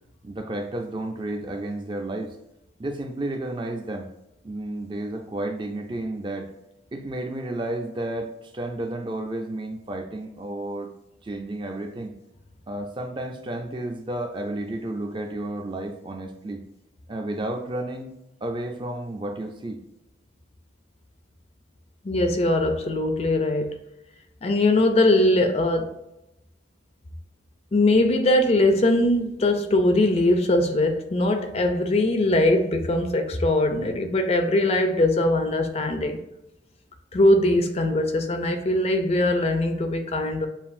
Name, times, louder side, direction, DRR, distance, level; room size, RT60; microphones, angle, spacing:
voice 1, 0.2-2.4 2.8-4.1 4.4-6.5 6.9-10.9 11.2-12.1 12.7-16.6 17.1-18.1 18.4-19.8, right 1 dB, 25° right, 0.4 m, -32 dB
voice 2, 22.0-23.8 24.4-25.9 27.7-36.2 37.1-40.5, left 1 dB, 30° left, 0.4 m, -21 dB
7.2 x 2.5 x 2.5 m
head